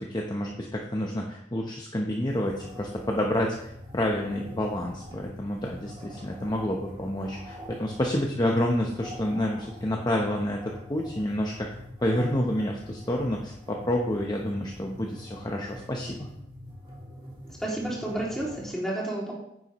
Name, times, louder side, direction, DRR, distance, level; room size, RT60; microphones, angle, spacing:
voice 1, 0.0-11.7 12.0-16.3, left 1 dB, 20° left, 0 dB, 0.8 m, -29 dB
sound 1, 2.3-18.7, equal, 25° right, 2.6 m, -45 dB
voice 2, 17.6-19.3, right 1 dB, 5° left, -5 dB, 2.5 m, -31 dB
9.6 x 7.8 x 3.0 m, 0.77 s
head